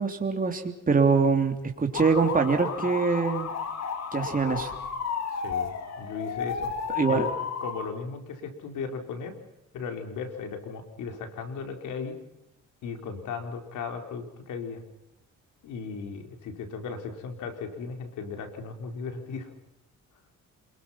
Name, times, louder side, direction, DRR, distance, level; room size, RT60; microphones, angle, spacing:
voice 1, 0.0-3.5 4.1-4.7 6.9-7.2, right 4 dB, 30° right, 3 dB, 3.2 m, -24 dB
sound 1, 1.9-7.9, left 6 dB, 60° left, 2.9 m, -32 dB
voice 2, 5.3-6.7 7.1-7.3 7.6-9.3 9.7-12.1 12.8-14.8 15.6-19.5, left 5 dB, 80° left, 5 dB, 4.4 m, -36 dB
28.0 x 22.0 x 5.8 m, 0.82 s
cardioid pair, 90°, 30 cm